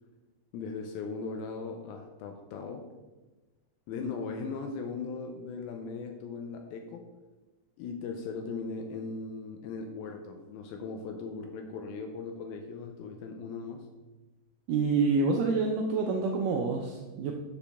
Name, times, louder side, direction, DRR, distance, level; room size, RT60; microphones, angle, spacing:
voice 1, 0.5-2.9 3.9-7.1 7.8-13.9, left 4 dB, 80° left, 4 dB, 2.4 m, -38 dB
voice 2, 14.7-17.3, right 4 dB, 85° right, 1 dB, 1.9 m, -27 dB
6.9 x 6.9 x 3.5 m, 1.2 s
omnidirectional pair, 4.4 m